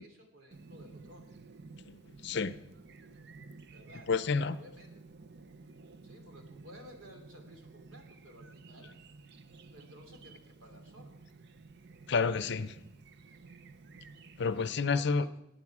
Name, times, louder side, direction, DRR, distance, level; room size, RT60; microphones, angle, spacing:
voice 1, 0.0-1.4 3.7-5.3 6.0-9.0 9.7-11.2 14.3-15.3, equal, 80° right, 4 dB, 3.0 m, -55 dB
Chirp tweet, 0.5-14.7, right 3 dB, 55° right, 0.6 m, -53 dB
voice 2, 1.9-2.5 4.1-4.6 12.1-12.8 14.4-15.3, left 4 dB, 60° left, 13 dB, 0.6 m, -30 dB
19.5 x 9.1 x 4.8 m, 0.89 s
head